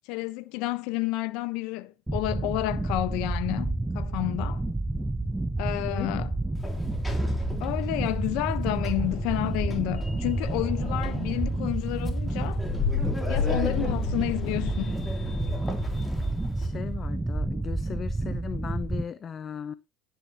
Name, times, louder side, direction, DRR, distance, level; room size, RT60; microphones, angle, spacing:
voice 1, 0.1-4.6 5.6-6.3 7.6-12.6 13.3-15.0, left 18 dB, 70° left, 1.2 m, -30 dB
sound 1, 2.1-19.0, right 2 dB, 10° right, 0.6 m, -30 dB
Sliding door, 6.5-16.7, left 3 dB, 10° left, 3.4 m, -33 dB
voice 2, 16.6-19.7, left 7 dB, 30° left, 0.7 m, -37 dB
11.5 x 10.5 x 3.1 m
supercardioid pair, 115°, 0 cm